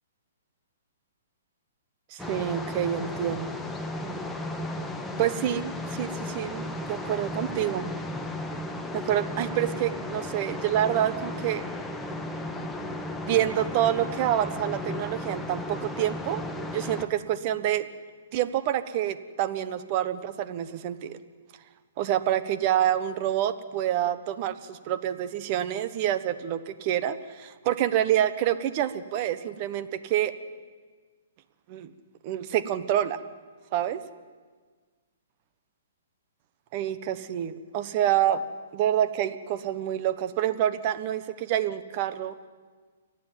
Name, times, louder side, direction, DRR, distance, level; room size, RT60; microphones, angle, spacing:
voice 1, 2.1-3.6 5.2-7.9 8.9-11.6 13.2-16.4 16.7-17.9 18.3-21.2 22.0-30.3 31.7-31.9 32.2-33.2 33.7-34.0 36.7-38.4 38.7-42.3, right 11 dB, 35° right, 13 dB, 1.1 m, -27 dB
sound 1, 2.2-17.1, left 1 dB, 5° left, 1.2 m, -34 dB
29.0 x 10.5 x 9.2 m, 1.5 s
hypercardioid pair, 155°, 0 cm